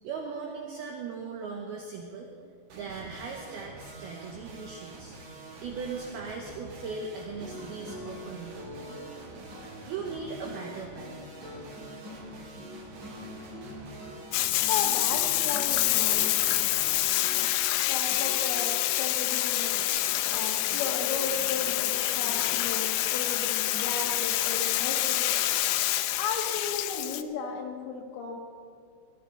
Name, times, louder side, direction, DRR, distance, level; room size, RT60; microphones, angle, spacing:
voice 1, 0.0-2.3 2.7-5.1 5.6-8.6 9.8-11.2, right 5 dB, 70° right, 1 dB, 2.6 m, -38 dB
sound 1, 2.7-17.0, right 2 dB, 85° right, 4.9 m, -46 dB
sound 2, 7.4-17.8 18.1-19.4 19.7-22.6, left 1 dB, 25° right, 5.2 m, -45 dB
Bathtub (filling or washing), 14.3-27.2, left 15 dB, 85° left, 2.5 m, -27 dB
voice 2, 14.7-16.6 17.3-17.5 17.9-19.8 20.3-25.4 26.2-28.4, left 4 dB, 65° left, 0 dB, 3.5 m, -35 dB
21.0 x 14.0 x 3.9 m, 2.2 s
omnidirectional pair, 5.4 m